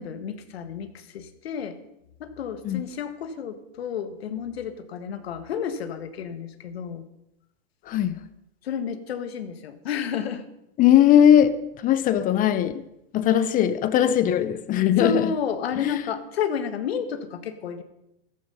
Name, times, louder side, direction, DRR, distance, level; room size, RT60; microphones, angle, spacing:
voice 1, 0.0-1.7 2.2-7.0 8.6-10.4 15.0-17.8, left 7 dB, 75° left, 1.8 m, -31 dB
voice 2, 10.8-12.8 13.1-15.3 15.8-16.0, left 10 dB, 25° left, 0.7 m, -19 dB
14.0 x 12.0 x 5.6 m
hypercardioid pair, 130°, 31 cm